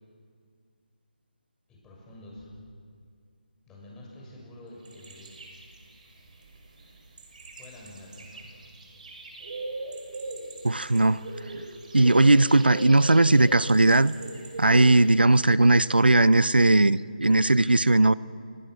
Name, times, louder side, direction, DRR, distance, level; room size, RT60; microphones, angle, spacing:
voice 1, 1.7-2.5 3.7-5.3 7.6-8.5, left 1 dB, 10° left, -3 dB, 7.0 m, -47 dB
sound 1, 4.9-15.1, right 2 dB, 55° right, 5.8 m, -41 dB
voice 2, 10.6-11.2 11.9-14.1 14.6-18.1, right 2 dB, 90° right, 19 dB, 0.7 m, -18 dB
29.5 x 25.0 x 6.4 m, 2.2 s
figure-of-eight pair, 155°, 5 cm